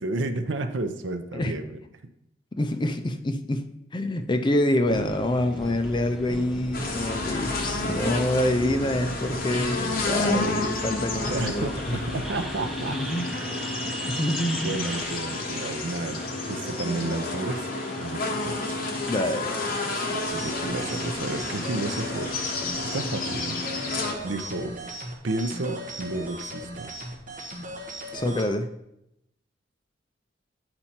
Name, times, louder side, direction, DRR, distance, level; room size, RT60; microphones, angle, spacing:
voice 1, 0.0-1.8 11.3-13.0 14.6-17.7 18.0-19.0 19.4-19.5 20.1-22.3 22.9-24.7 25.2-26.9, right 2 dB, 80° right, 9 dB, 0.6 m, -32 dB
voice 2, 2.6-3.6 3.9-12.0 12.7-13.3 14.0-14.7 19.1-20.1 28.1-28.7, left 1 dB, 25° left, 7 dB, 0.5 m, -26 dB
sound 1, 4.9-20.4, right 1 dB, ahead, 0.8 m, -38 dB
sound 2, 6.7-24.1, left 2 dB, 50° left, 1.0 m, -31 dB
sound 3, 20.1-28.5, right 1 dB, 45° right, 1.2 m, -38 dB
8.8 x 4.4 x 4.3 m, 0.83 s
head